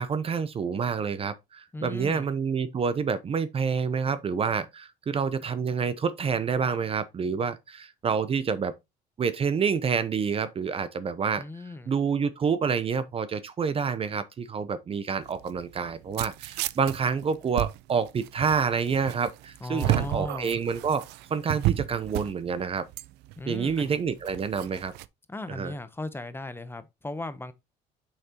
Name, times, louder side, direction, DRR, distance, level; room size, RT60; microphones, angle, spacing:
voice 1, 0.0-8.7 9.2-11.4 11.9-21.0 21.3-22.9 23.5-24.9 25.5-25.7, right 6 dB, 35° right, 0.6 m, -28 dB
voice 2, 1.7-2.3 11.4-11.9 19.6-20.6 23.4-24.0 25.3-27.5, left 2 dB, 15° left, 0.7 m, -36 dB
sound 1, 15.2-25.1, right 16 dB, 85° right, 0.4 m, -33 dB
6.5 x 5.8 x 2.8 m
cardioid pair, 110°, 17 cm